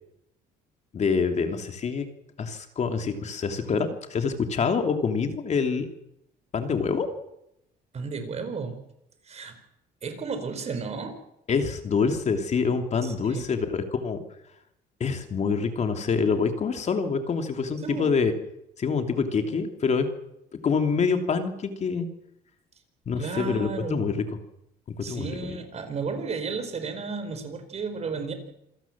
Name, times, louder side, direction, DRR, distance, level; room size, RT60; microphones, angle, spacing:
voice 1, 0.9-2.1 2.4-5.9 6.5-7.1 11.5-14.2 15.0-18.3 18.8-20.1 20.6-22.1 23.1-24.2 25.0-25.6, left 5 dB, 40° left, 6 dB, 3.0 m, -26 dB
voice 2, 7.9-8.8 9.2-9.5 10.0-11.2 13.0-13.4 17.8-18.1 23.2-24.1 25.0-28.3, right 5 dB, 40° right, 8 dB, 4.7 m, -33 dB
27.0 x 17.0 x 7.4 m, 0.83 s
cardioid pair, 110°, 17 cm